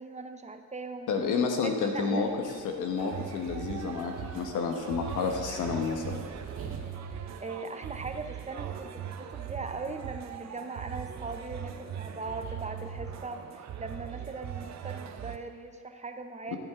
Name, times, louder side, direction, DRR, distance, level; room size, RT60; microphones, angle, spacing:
voice 1, 0.0-1.1 1.6-2.3 7.4-16.6, right 3 dB, 25° right, 7 dB, 0.7 m, -40 dB
voice 2, 1.1-2.3 2.6-6.2 16.5-16.6, left 5 dB, 80° left, 3 dB, 1.3 m, -30 dB
sound 1, 2.0-7.0, right 3 dB, 50° right, 1.8 m, -50 dB
sound 2, 3.0-15.4, right 9 dB, 65° right, 0.8 m, -40 dB
13.5 x 8.1 x 3.8 m, 2.1 s
cardioid pair, 90°, 30 cm